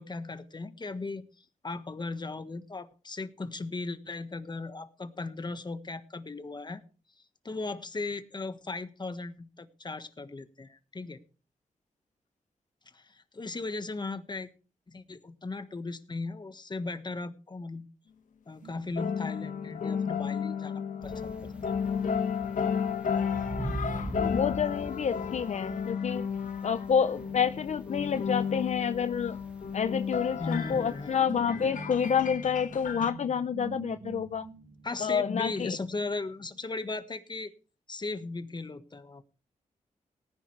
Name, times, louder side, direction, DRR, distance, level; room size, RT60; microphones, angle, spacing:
voice 1, 0.0-6.8 7.4-11.2 12.9-14.5 14.9-17.9 18.5-21.3 21.7-21.8 30.4-31.1 34.8-37.5 37.9-39.2, left 3 dB, 35° left, 10 dB, 1.4 m, -37 dB
Guitar, 18.6-26.3 26.6-37.1, right 3 dB, 85° right, 6.9 m, -50 dB
sound 1, 19.0-33.1, left 7 dB, 80° left, 1.4 m, -33 dB
sound 2, 21.0-31.2, right 1 dB, 10° right, 2.3 m, -43 dB
voice 2, 24.2-26.3 26.6-29.4 29.7-34.5 35.0-35.8, left 7 dB, 60° left, 11 dB, 0.6 m, -28 dB
18.5 x 10.5 x 3.3 m, 0.35 s
cardioid pair, 75°, 13 cm